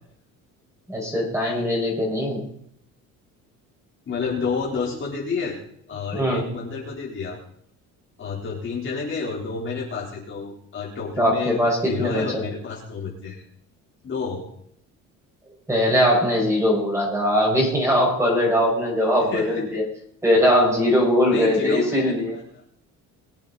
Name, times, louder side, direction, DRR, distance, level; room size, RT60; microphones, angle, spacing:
voice 1, 0.9-2.5 6.1-6.4 11.2-12.4 15.7-19.8 20.2-22.3, equal, 10° right, -2 dB, 5.6 m, -21 dB
voice 2, 4.1-5.6 5.9-7.4 8.2-13.4 14.0-14.5 19.2-19.8 21.3-22.6, left 5 dB, 40° left, -4 dB, 4.0 m, -30 dB
22.0 x 8.4 x 4.2 m, 0.67 s
cardioid pair, 135°, 31 cm